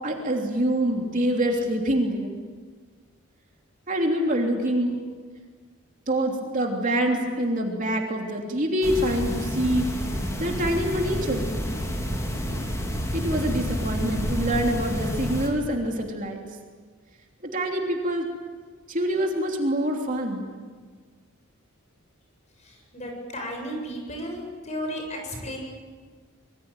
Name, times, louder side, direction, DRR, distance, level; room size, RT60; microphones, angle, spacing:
voice 1, 0.0-2.3 3.9-5.0 6.1-10.1 10.4-11.6 13.1-16.4 17.4-18.3 18.9-20.5, right 1 dB, 40° right, 1 dB, 3.2 m, -25 dB
sound 1, 8.8-15.5, equal, 15° left, 4.0 m, -29 dB
voice 2, 22.6-25.6, equal, 35° left, 2 dB, 7.7 m, -34 dB
26.5 x 23.0 x 9.2 m, 1.5 s
head